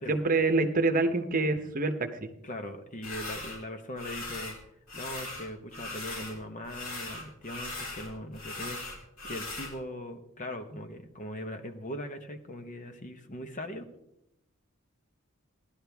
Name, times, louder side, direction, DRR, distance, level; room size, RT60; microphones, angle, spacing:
voice 1, 0.1-2.3, right 3 dB, 40° right, 8 dB, 0.9 m, -26 dB
voice 2, 2.4-4.6 4.9-8.8 9.2-13.9, left 1 dB, 40° left, 6 dB, 1.1 m, -40 dB
sound 1, 3.0-3.6 4.0-4.6 4.9-6.4 6.6-9.7, left 2 dB, 85° left, 4.0 m, -39 dB
17.5 x 11.5 x 3.5 m, 0.84 s
head